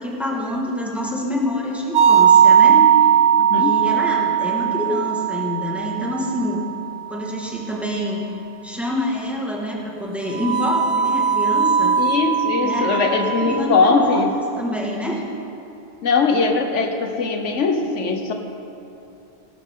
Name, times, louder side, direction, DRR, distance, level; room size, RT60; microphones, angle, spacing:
voice 1, 0.0-2.8 3.5-6.6 7.1-8.2 8.6-12.0 12.6-14.3 14.6-15.2, left 1 dB, ahead, -3 dB, 1.8 m, -26 dB
sound 1, 1.9-6.9 10.3-13.6, right 8 dB, 85° right, 1.1 m, -18 dB
voice 2, 3.4-3.8 12.0-14.4 16.0-18.3, left 4 dB, 80° left, 4 dB, 1.3 m, -20 dB
17.5 x 12.0 x 3.8 m, 2.8 s
omnidirectional pair, 1.2 m